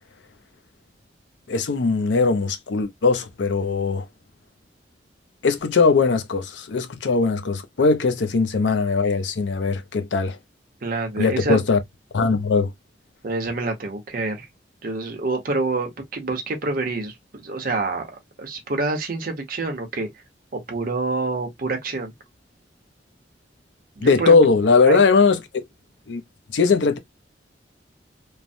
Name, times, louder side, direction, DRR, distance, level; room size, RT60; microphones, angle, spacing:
voice 1, 1.5-4.1 5.4-10.4 11.2-11.8 12.1-12.7 24.0-25.6 26.1-26.2 26.5-27.0, left 4 dB, 80° left, 0.5 m, -20 dB
voice 2, 10.8-11.6 13.2-14.5 14.8-20.1 20.5-22.1 24.0-24.4 24.9-25.0, right 3 dB, 55° right, 0.8 m, -27 dB
3.2 x 2.0 x 2.5 m
head